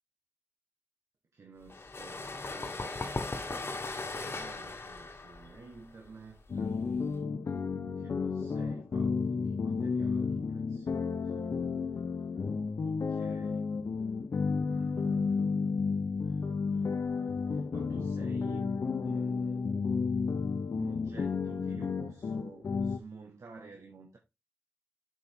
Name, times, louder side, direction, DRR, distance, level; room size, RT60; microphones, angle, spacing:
voice 1, 1.3-6.8 8.0-11.5 12.8-13.7 14.7-15.6 16.2-18.7 19.0-19.7 20.7-24.2, right 4 dB, 85° right, 1.3 m, -52 dB
sound 1, 1.7-7.2, left 3 dB, 55° left, 1.2 m, -38 dB
sound 2, 6.5-23.0, left 5 dB, 80° left, 0.8 m, -32 dB
7.2 x 5.3 x 3.6 m
cardioid pair, 55°, 5 cm